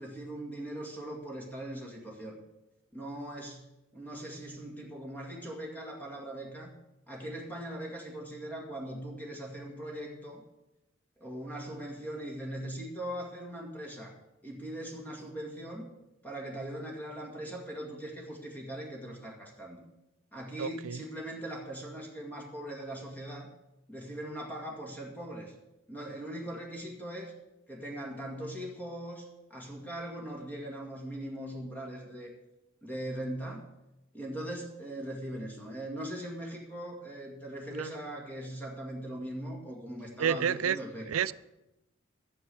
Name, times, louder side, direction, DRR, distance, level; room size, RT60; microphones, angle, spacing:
voice 1, 0.0-2.4 2.9-3.7 3.9-6.7 7.1-10.4 11.2-14.2 14.4-15.8 16.2-19.8 20.3-23.5 23.9-25.5 25.9-27.3 27.7-32.3 32.8-33.7 34.1-41.2, right 1 dB, 10° left, -1 dB, 2.1 m, -40 dB
voice 2, 20.6-21.0 37.7-37.9 40.2-40.8 41.1-41.3, right 8 dB, 90° right, 18 dB, 0.4 m, -29 dB
12.0 x 7.7 x 7.0 m, 0.94 s
head